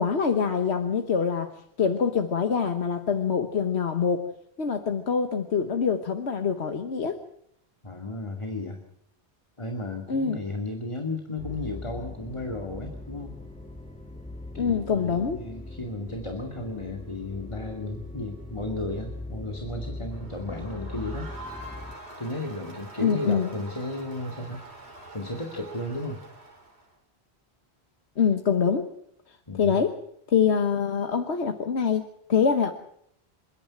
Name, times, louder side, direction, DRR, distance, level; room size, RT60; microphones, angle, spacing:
voice 1, 0.0-1.5 1.8-4.3 4.6-7.2 10.1-10.4 14.6-15.4 23.0-23.5 28.2-28.9 29.6-30.0 30.3-32.7, left 6 dB, 85° left, 6 dB, 1.6 m, -25 dB
voice 2, 7.8-8.8 9.6-13.3 14.5-21.3 22.2-24.6 25.1-26.2 29.5-29.8, left 2 dB, 30° left, 2 dB, 2.4 m, -34 dB
sound 1, 11.4-21.9, left 2 dB, 5° left, 2.4 m, -40 dB
Crowd, 20.1-26.9, right 2 dB, 90° right, 4.1 m, -45 dB
28.0 x 10.5 x 9.8 m, 0.72 s
omnidirectional pair, 1.1 m